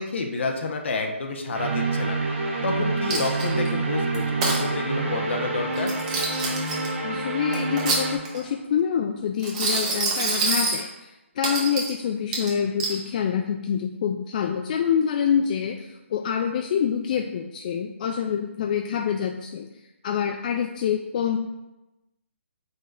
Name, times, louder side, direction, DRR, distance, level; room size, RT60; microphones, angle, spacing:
voice 1, 0.0-2.2 2.6-5.9, left 3 dB, 60° left, 3 dB, 1.0 m, -29 dB
sound 1, 1.5-8.2, right 3 dB, 65° right, 1.3 m, -27 dB
Coin (dropping), 3.1-3.7 4.1-4.6 5.8-6.9 7.5-8.5 9.4-10.8 11.4-11.9 12.3-13.0, right 3 dB, 30° right, 1.3 m, -26 dB
voice 2, 7.0-11.1 11.4-19.7 20.0-21.4, left 8 dB, 40° left, 3 dB, 0.4 m, -26 dB
7.3 x 5.4 x 2.5 m, 1.0 s
figure-of-eight pair, 145°, 7 cm